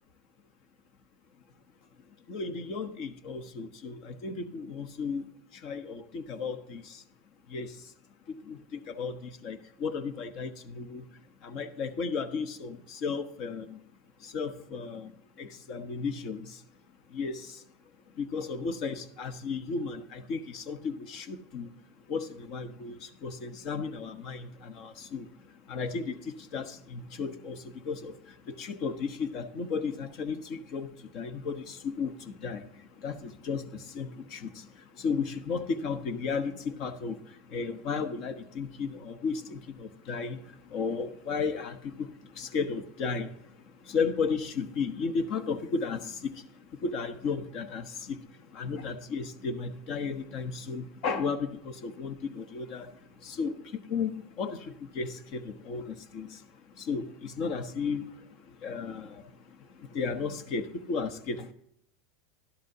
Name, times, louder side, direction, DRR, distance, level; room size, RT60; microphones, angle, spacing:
voice 1, 2.3-5.2 5.6-6.8 7.5-7.7 8.5-8.6 8.9-9.2 9.4-10.5 10.7-11.0 11.4-13.8 14.3-15.1 15.4-16.4 17.1-17.4 18.2-21.7 22.1-22.9 23.2-25.3 25.7-26.2 26.5-27.6 27.9-28.1 28.6-30.9 31.1-32.1 32.4-32.6 33.0-33.7 33.9-34.5 35.0-37.1 37.5-40.4 40.7-42.1 42.4-43.3 43.9-46.0 46.8-48.1 48.5-52.9 53.3-53.5 53.9-54.1 54.4-54.6 54.9-55.8 56.1-56.3 56.9-58.1 58.6-59.1 59.9-61.5, left 5 dB, 55° left, 10 dB, 1.2 m, -34 dB
12.0 x 11.5 x 2.9 m, 0.72 s
supercardioid pair, 110°, 0 cm